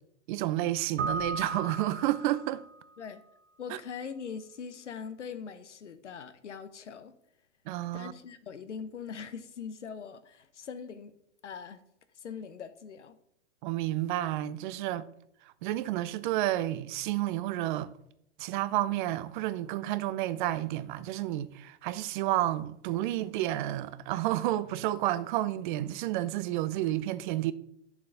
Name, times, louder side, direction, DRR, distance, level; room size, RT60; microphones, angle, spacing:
voice 1, 0.3-2.6 3.7-3.8 7.7-8.1 13.6-15.1 15.6-17.9 18.4-27.5, right 14 dB, 45° right, 0.7 m, -30 dB
Keyboard (musical), 1.0-2.8, right 3 dB, 70° right, 1.4 m, -36 dB
voice 2, 3.6-7.1 7.9-11.1 11.4-11.8 12.2-13.2, left 6 dB, 80° left, 1.0 m, -42 dB
9.6 x 7.1 x 4.0 m
hypercardioid pair, 115°, 35 cm